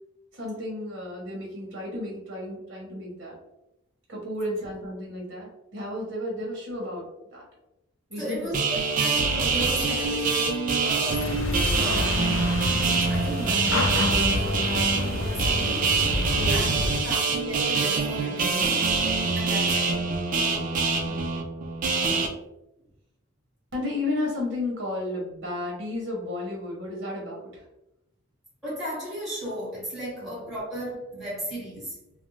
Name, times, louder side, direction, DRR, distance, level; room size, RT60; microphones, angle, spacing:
voice 1, 0.3-3.3 4.1-7.4 8.1-8.6 16.3-16.9 21.1-21.4 23.7-27.6 30.2-30.3, left 1 dB, 60° right, -3 dB, 0.9 m, -33 dB
voice 2, 8.1-11.4 11.7-12.4 13.1-15.9 16.5-18.9 19.3-20.0 22.0-22.4 28.6-32.0, right 1 dB, ahead, -10 dB, 1.3 m, -35 dB
sound 1, 8.5-22.3, right 4 dB, 40° right, 0.4 m, -25 dB
sound 2, 11.1-17.0, left 2 dB, 75° left, 0.4 m, -29 dB
2.5 x 2.1 x 3.0 m, 0.89 s
head